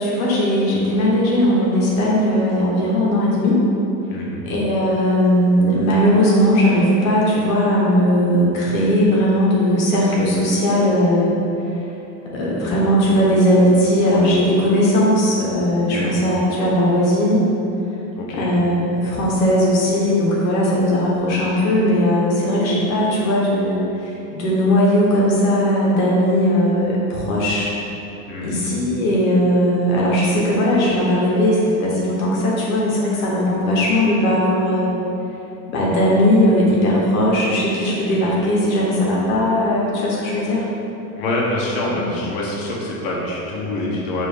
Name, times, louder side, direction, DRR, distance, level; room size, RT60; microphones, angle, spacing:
voice 1, 0.0-3.6 4.4-11.3 12.3-17.4 18.3-27.7 28.4-34.9 35.7-40.7 41.8-42.1, equal, 85° left, -5 dB, 0.9 m, -18 dB
voice 2, 4.1-4.4 15.9-16.2 18.2-18.5 28.3-28.6 41.2-44.3, left 1 dB, 55° left, -4 dB, 0.9 m, -25 dB
4.4 x 2.5 x 3.4 m, 2.9 s
supercardioid pair, 115°, 40 cm